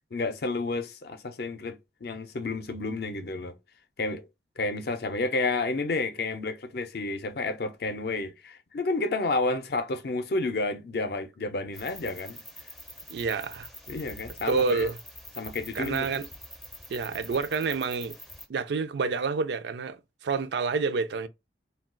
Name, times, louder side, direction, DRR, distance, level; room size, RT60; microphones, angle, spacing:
voice 1, 0.1-3.6 4.0-4.3 4.6-12.4 13.9-14.9 15.4-16.2, left 3 dB, 60° left, 0.5 m, -31 dB
sound 1, 11.7-18.5, left 1 dB, ahead, 0.4 m, -45 dB
voice 2, 13.1-13.7 14.5-15.0 15.7-16.3 16.9-18.1 18.5-21.3, right 4 dB, 70° right, 0.4 m, -28 dB
2.3 x 2.3 x 3.7 m
head